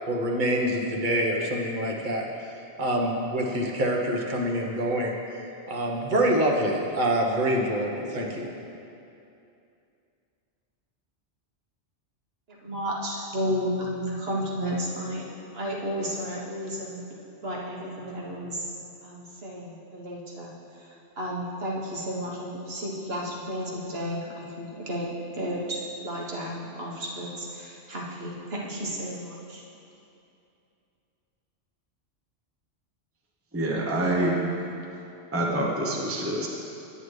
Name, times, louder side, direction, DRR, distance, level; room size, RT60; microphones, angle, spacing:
voice 1, 0.1-2.2 2.8-5.2 5.7-8.5, right 1 dB, 45° right, -1 dB, 1.1 m, -26 dB
voice 2, 12.5-15.2 15.5-17.0 17.4-18.7 19.0-20.5 20.8-29.6, equal, 65° right, -4 dB, 1.5 m, -32 dB
voice 3, 33.5-34.4 35.3-36.5, right 1 dB, 15° right, -2 dB, 0.8 m, -26 dB
9.7 x 8.9 x 3.2 m, 2.7 s
omnidirectional pair, 1.1 m